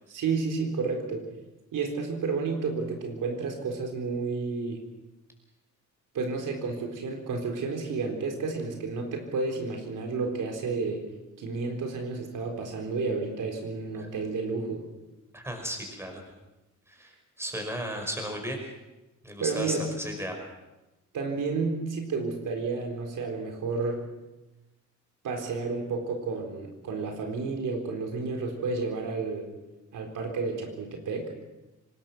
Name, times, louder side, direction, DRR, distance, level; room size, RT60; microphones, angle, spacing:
voice 1, 0.1-1.3 1.7-4.8 6.1-11.0 11.4-14.9 19.4-19.9 21.1-24.0 25.2-29.5 29.9-31.3, right 4 dB, 85° right, 2 dB, 4.2 m, -31 dB
voice 2, 15.3-16.2 16.9-18.7 19.2-20.3, equal, 10° right, 3 dB, 5.3 m, -35 dB
25.0 x 19.5 x 6.2 m, 1.0 s
cardioid pair, 135°, 31 cm